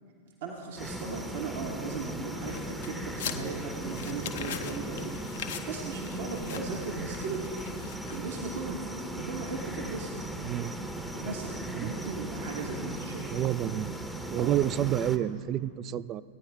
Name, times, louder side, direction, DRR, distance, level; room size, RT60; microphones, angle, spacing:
voice 1, 0.4-7.7 8.1-8.9 9.1-10.2 11.1-13.4 14.3-14.6, right 4 dB, 60° right, -1 dB, 1.2 m, -37 dB
sound 1, 0.7-15.2, right 1 dB, 5° right, 0.8 m, -38 dB
sound 2, 2.5-8.7, left 9 dB, 60° left, 0.7 m, -42 dB
voice 2, 10.4-10.7 11.8-11.9 13.3-13.9 14.3-16.2, right 12 dB, 35° right, 17 dB, 0.3 m, -29 dB
17.5 x 9.6 x 3.5 m, 2.2 s
figure-of-eight pair, 90°, 0 cm